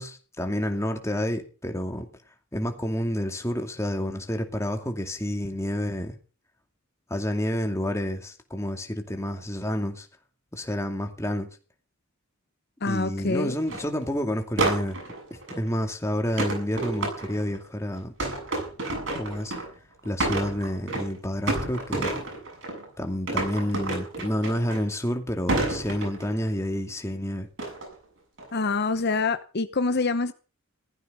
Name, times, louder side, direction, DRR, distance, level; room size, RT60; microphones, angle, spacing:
voice 1, 0.0-2.0 2.5-6.1 7.1-10.1 10.5-11.5 12.8-15.0 15.5-18.1 19.2-19.5 20.0-22.2 23.0-27.5, equal, 15° left, 2.4 m, -29 dB
voice 2, 12.8-13.5 28.5-30.3, left 3 dB, 50° left, 0.8 m, -26 dB
sound 1, 13.7-13.9 14.6-15.7 16.4-17.6 18.2-19.8 20.0-21.2 21.5-22.9 23.3-25.1 25.5-26.5 27.6-27.9 28.4-28.7, right 2 dB, 65° right, 7.6 m, -29 dB
16.0 x 13.5 x 5.5 m
head